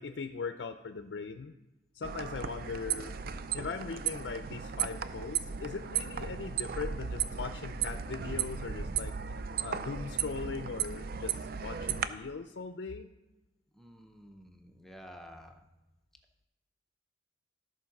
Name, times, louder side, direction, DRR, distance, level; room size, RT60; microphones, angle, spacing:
voice 1, 0.0-1.5 1.9-3.2 3.5-13.1, left 4 dB, 65° left, 9 dB, 0.5 m, -40 dB
sound 1, 2.0-12.0, right 8 dB, 50° right, 0.4 m, -35 dB
voice 2, 13.7-15.7, equal, ahead, 3 dB, 0.6 m, -51 dB
13.5 x 4.6 x 5.9 m, 1.0 s
head